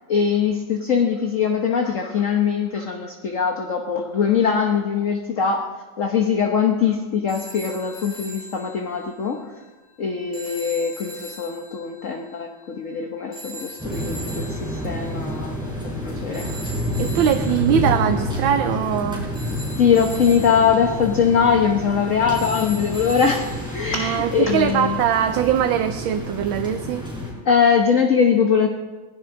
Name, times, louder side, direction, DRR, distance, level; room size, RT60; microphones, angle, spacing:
voice 1, 0.1-5.7 6.0-9.4 10.0-15.6 16.0-16.6 19.8-23.5 23.7-25.0 27.4-28.7, left 6 dB, 50° left, 3 dB, 1.2 m, -21 dB
sound 1, 7.3-24.2, equal, 30° left, 5.0 m, -41 dB
sound 2, 13.8-27.3, left 1 dB, ahead, 5.2 m, -29 dB
voice 2, 17.0-19.3 23.9-27.1, right 9 dB, 80° right, 7 dB, 1.5 m, -21 dB
20.0 x 16.5 x 3.8 m, 1.3 s
omnidirectional pair, 2.1 m